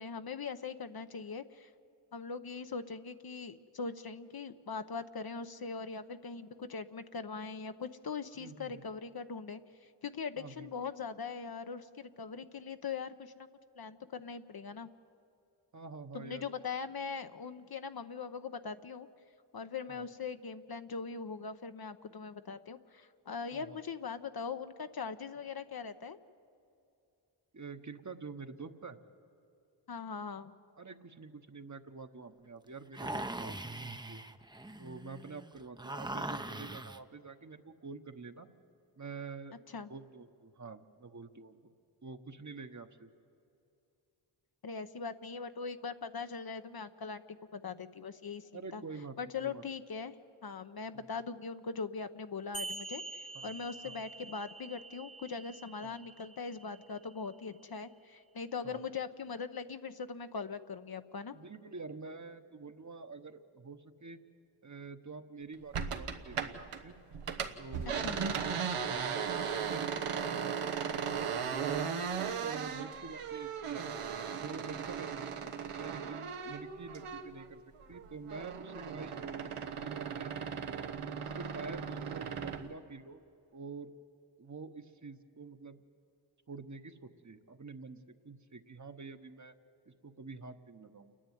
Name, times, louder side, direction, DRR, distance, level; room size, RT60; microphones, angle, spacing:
voice 1, 0.0-1.7 2.1-9.6 10.0-13.5 13.7-14.9 16.1-19.1 19.5-26.2 29.9-30.5 39.7-39.9 44.6-48.8 49.2-50.1 50.4-61.4 68.0-68.2, left 5 dB, 45° left, 9 dB, 0.9 m, -41 dB
voice 2, 8.4-8.9 10.4-10.9 15.7-16.5 19.9-20.0 23.5-23.8 27.5-29.0 30.8-33.6 34.1-34.2 34.8-38.5 39.0-39.6 39.9-41.7 42.0-43.1 48.5-49.6 50.9-51.0 53.3-53.5 53.8-54.0 55.8-56.0 58.6-58.8 61.3-64.2 64.6-67.0 67.6-68.2 68.8-72.0 72.4-73.9 74.3-77.6 77.9-80.9 81.2-83.2 83.5-83.9 84.4-85.8 86.5-88.0 88.2-89.6 89.9-91.2, right 4 dB, 35° right, 8 dB, 1.1 m, -47 dB
sound 1, 32.9-37.0, right 2 dB, 10° right, 0.7 m, -41 dB
sound 2, 52.5-57.6, right 3 dB, 15° left, 1.0 m, -46 dB
sound 3, 65.7-66.8 67.1-77.5 77.8-82.7, right 7 dB, 85° right, 1.2 m, -37 dB
28.5 x 10.0 x 9.3 m, 2.6 s
cardioid pair, 50°, 50 cm